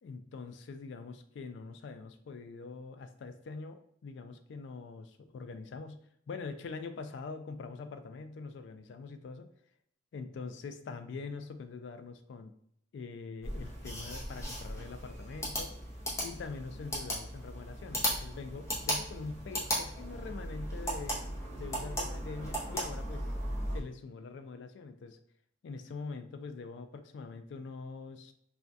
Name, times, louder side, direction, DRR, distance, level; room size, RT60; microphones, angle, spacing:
voice 1, 0.0-9.5 10.1-12.5 12.9-15.7 16.2-21.2 21.6-23.3 23.7-25.2 25.6-28.3, left 4 dB, 70° left, 9 dB, 0.3 m, -44 dB
sound 1, 13.4-23.8, equal, 15° left, 0.6 m, -37 dB
2.6 x 2.2 x 3.4 m, 0.70 s
head